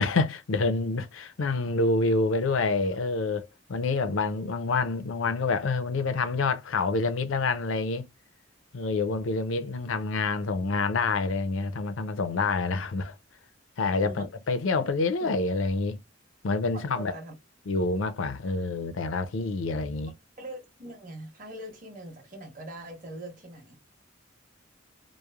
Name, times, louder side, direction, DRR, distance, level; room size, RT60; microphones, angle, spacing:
voice 1, 0.0-8.1 8.7-13.1 13.8-16.0 16.4-17.1 17.7-20.1, left 3 dB, 70° left, 0.5 m, -27 dB
voice 2, 16.7-17.3 20.4-23.8, right 1 dB, 40° right, 1.1 m, -42 dB
3.0 x 2.0 x 2.3 m
head